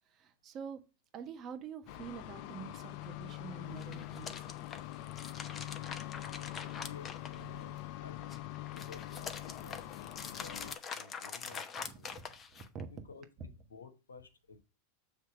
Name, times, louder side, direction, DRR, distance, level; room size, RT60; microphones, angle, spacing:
voice 1, 0.1-0.8 1.1-4.4 5.1-5.2 11.8-12.9, right 7 dB, 40° right, 6 dB, 1.3 m, -47 dB
sound 1, 1.9-10.7, left 15 dB, 55° left, 0.5 m, -44 dB
sound 2, 3.7-7.8 8.2-12.8, left 6 dB, 25° left, 0.9 m, -44 dB
voice 2, 6.0-7.7 8.0-12.1 12.9-14.6, left 4 dB, 90° left, 9 dB, 1.0 m, -54 dB
6.9 x 3.3 x 5.8 m, 0.29 s
hypercardioid pair, 95°, 0 cm